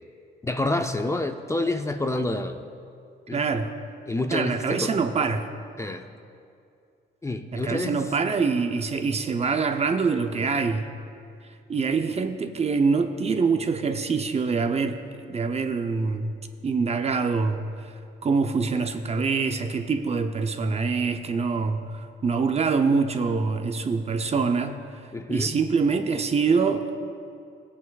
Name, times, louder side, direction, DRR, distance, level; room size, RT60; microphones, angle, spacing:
voice 1, 0.4-2.6 3.3-3.4 4.1-4.9 5.8-6.1 7.2-8.0 25.1-25.6, left 2 dB, 15° left, 6 dB, 0.5 m, -28 dB
voice 2, 3.3-3.7 4.3-5.5 7.5-10.9 11.7-15.0 15.3-16.3 16.6-17.9 18.2-24.8 25.3-27.0, right 4 dB, 30° right, 7 dB, 0.6 m, -25 dB
17.0 x 8.4 x 2.4 m, 2.4 s
cardioid pair, 90°, 20 cm